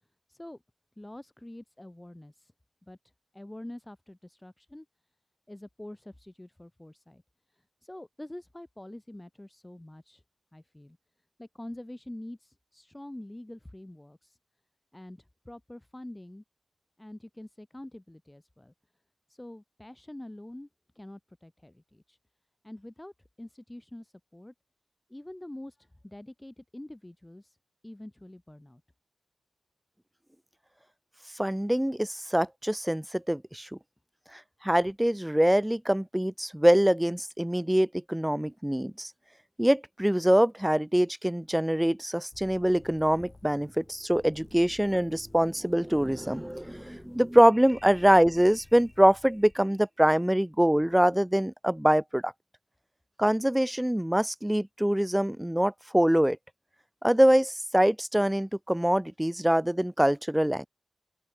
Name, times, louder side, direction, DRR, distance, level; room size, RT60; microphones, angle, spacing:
voice 1, 0.3-0.6 1.0-2.5 2.9-3.0 3.3-4.9 5.5-7.2 7.5-10.2 10.5-11.0 11.4-14.4 14.9-16.4 17.0-18.7 19.3-20.7 21.0-22.2 22.6-24.5 25.1-27.6 27.8-28.8, left 1 dB, 10° left, 7.1 m, -45 dB
voice 2, 31.4-33.7 34.3-39.1 39.6-52.3 53.2-56.4 57.0-60.7, equal, 5° right, 0.3 m, -24 dB
sound 1, 42.3-49.6, left 3 dB, 30° left, 3.6 m, -54 dB
open air
wide cardioid pair, 120°, 0 cm